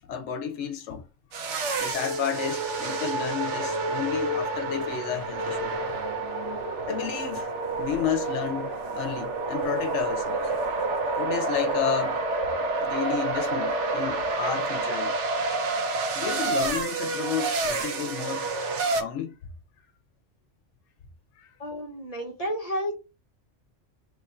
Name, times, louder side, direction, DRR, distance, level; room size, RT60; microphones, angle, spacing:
voice 1, 0.1-1.0 1.8-5.8 6.8-7.5 7.8-10.5 11.2-12.2 12.8-15.2 16.1-18.5 19.0-19.4 21.4-21.5, left 9 dB, 75° left, 0.9 m, -31 dB
sound 1, 1.3-19.0, right 3 dB, 75° right, 1.0 m, -29 dB
voice 2, 21.6-22.9, equal, 35° left, 1.0 m, -31 dB
3.2 x 2.5 x 4.2 m
omnidirectional pair, 1.2 m